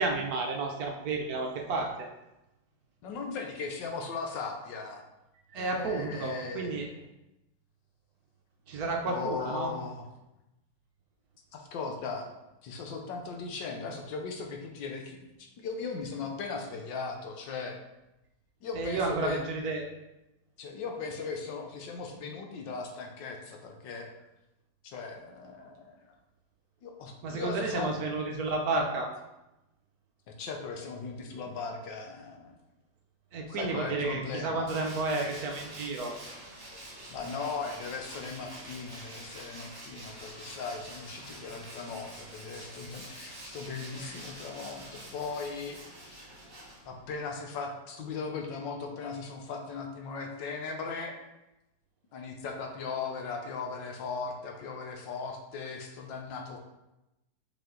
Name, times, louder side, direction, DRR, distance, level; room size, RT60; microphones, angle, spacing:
voice 1, 0.0-2.1 5.5-6.9 8.7-9.7 18.7-19.8 27.2-29.1 33.3-36.1, right 3 dB, 65° right, 1 dB, 1.1 m, -31 dB
voice 2, 3.0-5.0 5.6-6.9 9.0-10.1 11.5-12.3 12.6-17.8 18.6-19.4 20.6-24.1 24.8-26.1 26.8-27.9 30.3-32.6 33.5-34.7 37.1-46.2 46.8-51.2 52.1-56.6, left 4 dB, 85° left, 3 dB, 1.6 m, -38 dB
Tools, 34.7-47.2, right 1 dB, 20° right, 0.8 m, -46 dB
5.2 x 4.8 x 3.8 m, 0.94 s
omnidirectional pair, 2.0 m